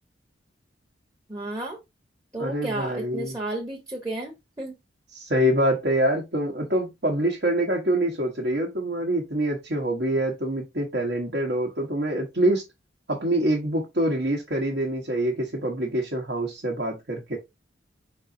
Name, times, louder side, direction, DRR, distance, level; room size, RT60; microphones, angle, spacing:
voice 1, 1.3-1.8 2.3-4.8, right 2 dB, 15° right, 0.9 m, -32 dB
voice 2, 2.4-3.3 5.1-12.6 13.1-17.4, right 1 dB, 55° right, 1.1 m, -25 dB
4.8 x 3.9 x 2.6 m
head